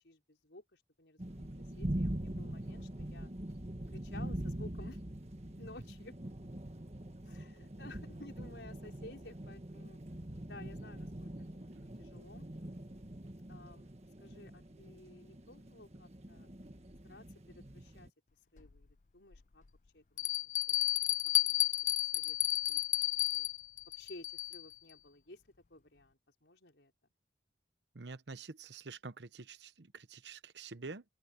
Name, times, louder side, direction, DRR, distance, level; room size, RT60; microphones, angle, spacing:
voice 1, 0.0-1.2 1.8-3.3 3.9-5.0 5.6-6.2 7.2-10.0 10.4-12.5 13.5-13.9 14.2-16.5 17.0-18.1 18.5-19.6 19.9-20.3 20.7-21.1 21.4-21.7 22.0-22.4 22.7-23.0 23.3-23.5 24.0-25.4 25.7-26.9, left 2 dB, 90° left, 5.2 m, -55 dB
sound 1, 1.2-18.1, right 1 dB, 40° right, 1.6 m, -43 dB
Bell, 18.6-18.7 19.3-19.4 20.2-24.7, left 13 dB, 45° left, 0.5 m, -32 dB
voice 2, 27.9-31.0, right 4 dB, 80° right, 1.0 m, -47 dB
open air
head